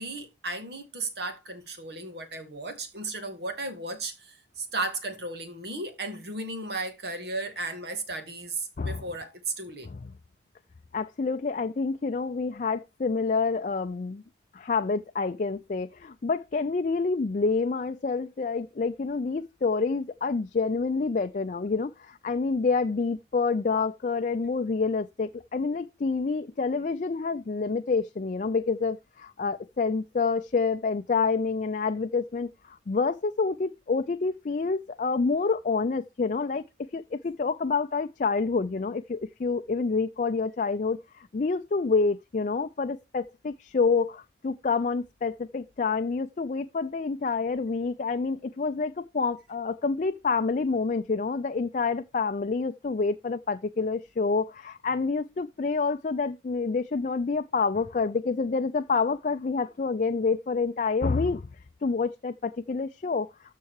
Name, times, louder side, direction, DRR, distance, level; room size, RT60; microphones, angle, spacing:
voice 1, 0.0-9.9, right 2 dB, 65° right, 2.1 m, -35 dB
voice 2, 10.9-14.2 14.5-36.6 36.9-61.4 61.8-63.3, left 4 dB, 45° left, 0.4 m, -28 dB
13.5 x 4.6 x 4.7 m
head